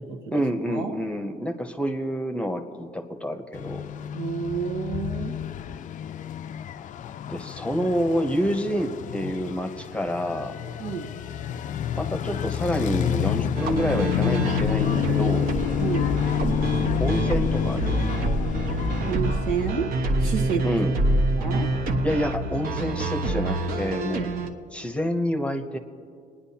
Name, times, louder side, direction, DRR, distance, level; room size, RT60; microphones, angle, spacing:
voice 1, 0.3-3.9 7.3-10.5 11.9-15.5 17.0-18.0 20.6-21.0 22.0-24.3 24.7-25.8, equal, 5° left, 6 dB, 0.8 m, -28 dB
sound 1, 3.5-19.7, left 10 dB, 50° left, 0.4 m, -29 dB
voice 2, 4.1-5.3 10.8-11.1 15.8-16.1 19.1-19.9 20.2-20.7 21.4-21.7 24.4-24.5, right 7 dB, 90° right, 3 dB, 1.4 m, -29 dB
sound 2, 13.6-24.5, right 2 dB, 60° right, 1.0 m, -26 dB
28.5 x 9.9 x 2.8 m, 2.3 s
cardioid pair, 110°, 17 cm